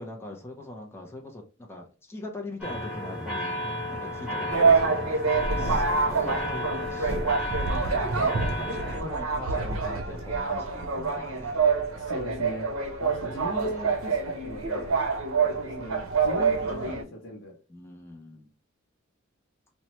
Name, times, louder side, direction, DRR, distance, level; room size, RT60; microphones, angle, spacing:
voice 1, 0.0-5.2 5.6-7.1 7.7-7.8 8.1-11.6 15.3-15.6 17.7-18.5, left 1 dB, 10° left, 1 dB, 0.5 m, -42 dB
sound 1, 2.6-9.0, left 1 dB, 5° right, 0.9 m, -33 dB
sound 2, 4.5-17.0, right 4 dB, 75° right, 0.6 m, -26 dB
voice 2, 11.9-12.7 13.0-15.0 15.6-17.6, equal, 65° left, -3 dB, 0.7 m, -37 dB
2.9 x 2.1 x 2.8 m, 0.34 s
head